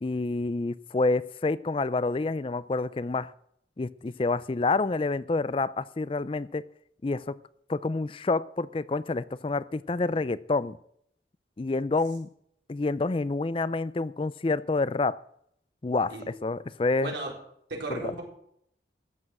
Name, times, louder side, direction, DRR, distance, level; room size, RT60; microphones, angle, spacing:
voice 1, 0.0-3.3 3.8-6.6 7.0-7.4 7.7-10.8 11.6-12.3 12.7-15.2 15.8-17.1 17.9-18.1, left 3 dB, 30° left, 18 dB, 0.4 m, -28 dB
voice 2, 17.0-17.3 17.7-18.2, right 2 dB, 85° right, -1 dB, 4.1 m, -34 dB
14.0 x 7.8 x 7.5 m, 0.71 s
head